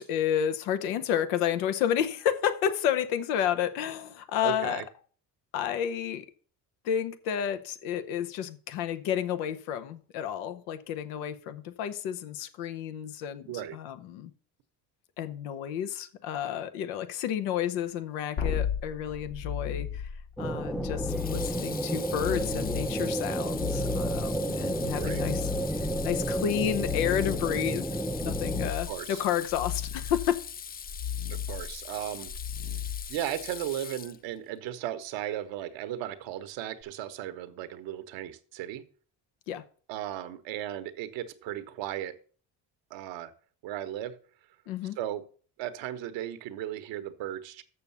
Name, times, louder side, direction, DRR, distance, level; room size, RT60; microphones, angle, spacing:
voice 1, 0.0-4.8 5.5-6.2 6.8-14.3 15.2-20.1 20.4-27.9 28.2-30.4 39.5-39.6 44.7-45.0, left 9 dB, 85° left, 0.9 m, -31 dB
voice 2, 4.4-4.8 13.5-13.8 24.9-25.2 28.9-29.2 31.3-32.3 33.1-38.8 39.9-42.1 42.9-43.3 43.6-44.2 45.0-45.2 45.6-47.6, right 12 dB, 80° right, 1.1 m, -36 dB
sound 1, 18.4-33.7 36.8-36.9, left 8 dB, 70° left, 2.4 m, -36 dB
Water tap faucet / Sink (filling or washing), 19.4-19.8 21.1-34.5, left 7 dB, 25° left, 0.3 m, -42 dB
sound 2, 20.4-28.7, right 1 dB, ahead, 0.7 m, -31 dB
6.9 x 6.8 x 6.9 m
supercardioid pair, 65°, 44 cm